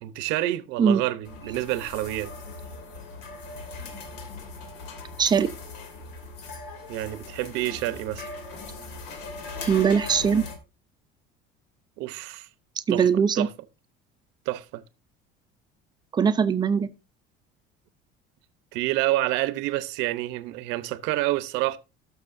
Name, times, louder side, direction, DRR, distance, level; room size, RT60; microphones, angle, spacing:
voice 1, 0.0-2.3 6.9-8.3 12.0-12.5 12.9-13.5 14.5-14.8 18.7-21.8, right 16 dB, 75° right, 0.9 m, -28 dB
sound 1, 1.2-10.6, left 3 dB, 70° left, 2.6 m, -39 dB
voice 2, 5.2-5.5 9.7-10.4 12.9-13.5 16.1-16.9, right 7 dB, 25° right, 0.6 m, -21 dB
18.5 x 6.4 x 2.6 m
cardioid pair, 150°, 19 cm